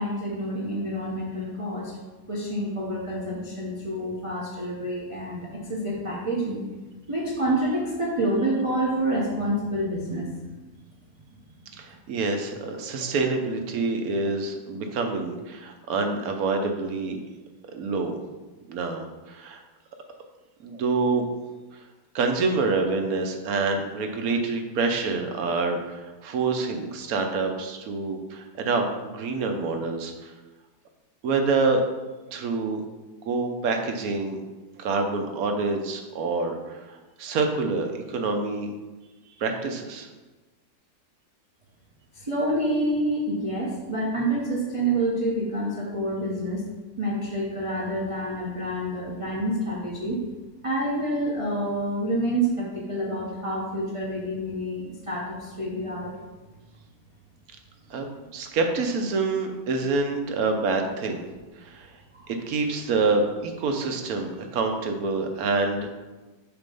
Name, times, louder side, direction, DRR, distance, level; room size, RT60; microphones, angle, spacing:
voice 1, 0.0-1.9 2.3-6.6 7.1-10.3 42.1-46.7 47.0-50.2 50.6-56.1 62.1-62.3, right 1 dB, 25° right, -5 dB, 0.7 m, -28 dB
voice 2, 11.8-17.2 17.7-18.2 18.7-19.6 20.6-21.2 22.1-30.3 31.2-31.8 32.3-32.8 33.3-34.4 34.8-38.7 39.4-40.1 57.9-61.2 61.6-61.9 62.4-66.0, right 3 dB, 65° right, 4 dB, 1.1 m, -27 dB
6.8 x 3.0 x 5.3 m, 1.2 s
omnidirectional pair, 1.8 m